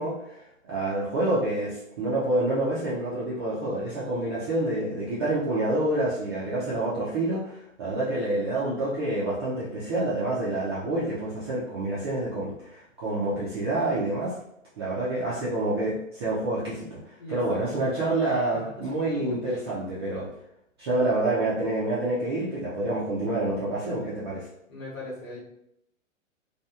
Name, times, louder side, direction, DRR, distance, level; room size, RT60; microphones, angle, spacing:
voice 1, 0.0-14.4 14.8-20.3 20.8-24.5, right 2 dB, 20° right, -9 dB, 0.3 m, -28 dB
voice 2, 17.2-17.5 18.5-18.7 19.1-19.6 24.7-25.4, left 2 dB, 80° left, -5 dB, 1.2 m, -39 dB
2.8 x 2.3 x 2.3 m, 0.78 s
hypercardioid pair, 120°, 39 cm